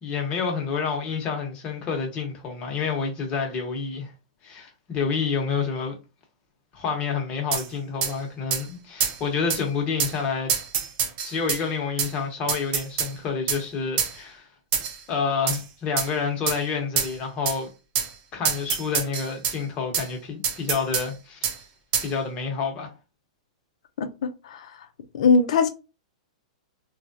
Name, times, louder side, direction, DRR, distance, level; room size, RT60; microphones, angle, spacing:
voice 1, 0.0-4.1 4.4-6.0 6.7-10.5 11.2-14.5 15.1-17.7 18.3-21.4 22.0-22.9, left 5 dB, 30° left, 1.1 m, -28 dB
sound 1, 7.5-7.7 8.0-8.1 8.5-8.6 9.0-9.2 9.5-9.6 10.0-10.1 10.5-11.6 12.0-12.1 12.5-13.1 13.5-13.6 14.0-14.1 14.7-15.0 15.5-15.6 16.0-16.1 16.5-16.6 17.0-17.1 17.5-17.6 17.9-18.1 18.4-19.6 19.9-20.1 20.4-21.1 21.4-21.6 21.9-22.1, right 8 dB, 40° right, 0.7 m, -26 dB
voice 2, 24.0-24.7 25.1-25.7, left 4 dB, 70° left, 0.7 m, -21 dB
3.1 x 2.4 x 2.6 m
hypercardioid pair, 140°, 4 cm